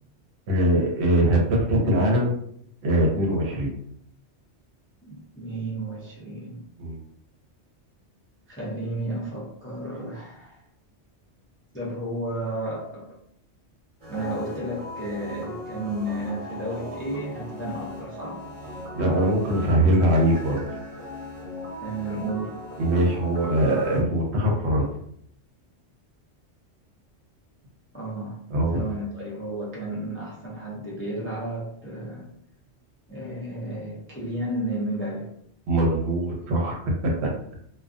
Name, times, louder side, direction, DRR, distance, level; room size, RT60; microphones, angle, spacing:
voice 1, 0.5-2.4 2.8-3.8 6.8-7.0 18.9-20.6 22.8-24.9 28.5-28.9 35.7-37.3, right 1 dB, 70° right, -1 dB, 0.9 m, -22 dB
voice 2, 5.0-6.6 8.5-10.6 11.7-13.2 14.1-18.5 19.6-20.0 21.8-22.6 27.9-28.4 28.7-32.3 33.1-35.3, right 1 dB, 20° left, -5 dB, 0.4 m, -32 dB
sound 1, 14.0-24.0, left 1 dB, 30° right, 1.1 m, -38 dB
2.4 x 2.2 x 2.4 m, 0.67 s
omnidirectional pair, 1.2 m